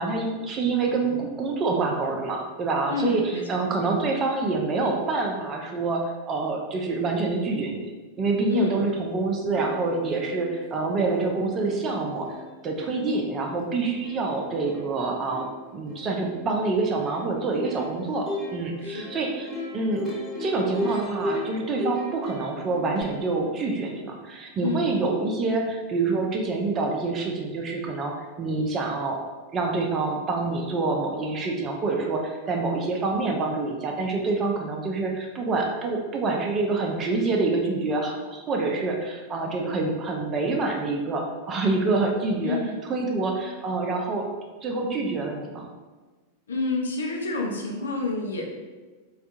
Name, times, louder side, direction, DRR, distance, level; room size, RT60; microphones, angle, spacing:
voice 1, 0.0-7.9 8.2-12.3 12.6-15.5 15.7-20.0 20.4-29.2 29.5-44.2 44.6-45.7, right 3 dB, 25° right, 1 dB, 0.6 m, -26 dB
voice 2, 2.9-3.4 8.5-8.8 18.8-19.1 24.6-24.9 42.4-42.7 46.5-48.4, left 3 dB, 70° left, 0 dB, 0.6 m, -28 dB
Plucked string instrument, 9.2-9.3 9.5-23.0, left 1 dB, 5° left, 1.0 m, -37 dB
4.4 x 2.4 x 2.6 m, 1.3 s
figure-of-eight pair, 90°, 0 cm